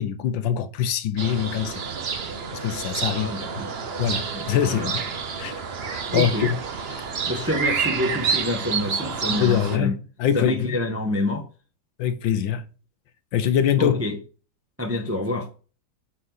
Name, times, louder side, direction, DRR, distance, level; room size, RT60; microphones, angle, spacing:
voice 1, 0.0-1.8 2.5-3.3 4.0-5.0 5.4-6.6 9.4-10.8 12.0-12.6 13.3-14.0, left 9 dB, 70° left, 1.3 m, -24 dB
sound 1, 1.2-9.8, right 6 dB, 65° right, 0.6 m, -29 dB
voice 2, 3.1-3.7 4.3-4.9 6.1-6.5 7.3-9.9 10.3-11.5 13.8-14.2 14.8-15.5, left 1 dB, 10° right, 0.7 m, -27 dB
8.5 x 4.5 x 4.0 m
omnidirectional pair, 2.3 m